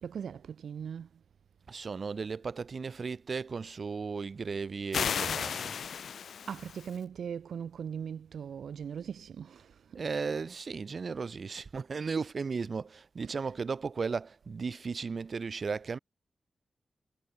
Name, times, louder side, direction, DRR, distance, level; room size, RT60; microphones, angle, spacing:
voice 1, 0.0-1.1 6.1-10.1 13.2-13.6, right 7 dB, 85° right, 2.3 m, -40 dB
voice 2, 1.7-5.7 9.9-16.0, right 5 dB, 50° right, 4.8 m, -35 dB
sound 1, 4.9-7.0, left 7 dB, 80° left, 1.9 m, -34 dB
wide cardioid pair, 100°, 0 cm